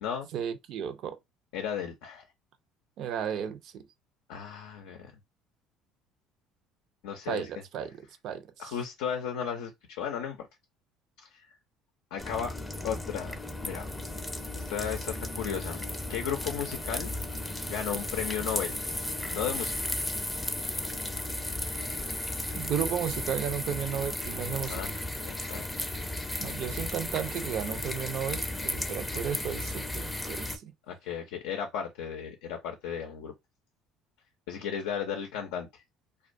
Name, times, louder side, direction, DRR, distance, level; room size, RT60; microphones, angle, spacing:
voice 1, 0.3-1.2 3.0-3.9 7.3-8.7 22.5-24.8 26.4-30.7, right 9 dB, 60° right, 0.4 m, -34 dB
voice 2, 1.5-2.2 4.3-5.1 7.0-7.5 8.6-9.7 10.0-10.4 11.2-11.4 12.1-12.5 12.8-13.9 14.5-15.8 16.1-17.1 17.7-18.8 19.3-19.9 24.7-24.9 25.2-25.9 30.9-33.3 34.5-35.8, left 8 dB, 85° left, 0.4 m, -35 dB
sound 1, 12.2-30.6, left 1 dB, 5° left, 0.5 m, -35 dB
2.3 x 2.2 x 2.5 m
supercardioid pair, 80°, 0 cm